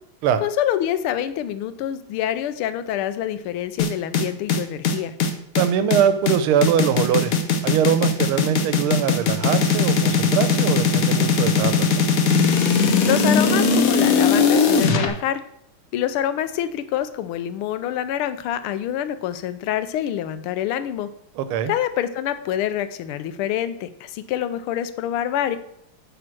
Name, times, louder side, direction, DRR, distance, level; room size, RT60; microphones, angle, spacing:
voice 1, 0.4-5.1 13.0-15.4 15.9-21.1 21.7-25.6, left 11 dB, 90° left, 12 dB, 1.5 m, -26 dB
sound 1, 3.8-15.1, left 5 dB, 60° left, 0.9 m, -19 dB
voice 2, 5.6-7.3 7.6-12.1 21.4-21.7, right 8 dB, 90° right, 11 dB, 1.6 m, -22 dB
8.6 x 3.6 x 6.0 m, 0.73 s
omnidirectional pair, 2.3 m